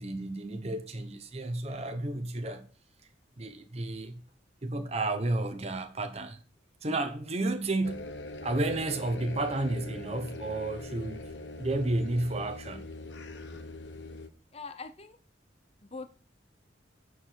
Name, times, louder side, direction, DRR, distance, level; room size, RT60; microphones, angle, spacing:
voice 1, 0.0-2.6 3.4-4.2 4.6-6.4 6.8-8.1 8.4-11.3 11.6-12.8, right 2 dB, 35° right, 1.0 m, -32 dB
sound 1, 7.8-14.3, left 2 dB, 65° left, 1.1 m, -42 dB
voice 2, 14.5-15.2 15.8-16.1, left 4 dB, 35° left, 0.9 m, -42 dB
9.6 x 4.8 x 6.5 m
head